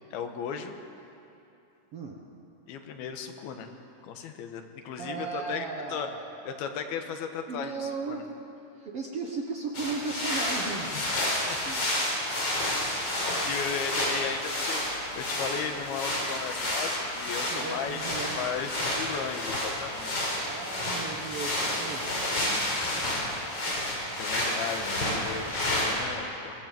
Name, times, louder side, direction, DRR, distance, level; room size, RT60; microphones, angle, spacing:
voice 1, 0.1-0.8 2.7-3.7 4.0-6.1 6.5-8.2 10.8-11.6 12.3-12.4 13.2-18.0 18.4-20.4 22.7-23.4 23.7-26.7, left 6 dB, 85° left, 6 dB, 3.2 m, -36 dB
voice 2, 5.0-6.6 7.5-8.3 8.7-10.9 11.7-11.8 17.5-18.5 20.4-22.1, right 4 dB, 60° right, 0 dB, 1.6 m, -36 dB
sound 1, 9.7-26.0, left 1 dB, 40° left, 5.3 m, -30 dB
24.0 x 17.5 x 7.6 m, 2.8 s
omnidirectional pair, 4.3 m